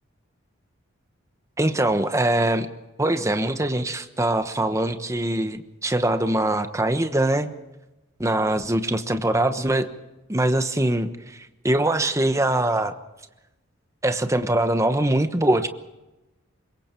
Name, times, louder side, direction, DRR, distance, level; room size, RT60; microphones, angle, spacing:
voice 1, 1.6-2.7 3.0-7.5 8.2-9.9 10.3-12.9 14.0-15.7, right 1 dB, 15° right, 8 dB, 1.1 m, -23 dB
25.5 x 22.5 x 4.6 m, 1.0 s
head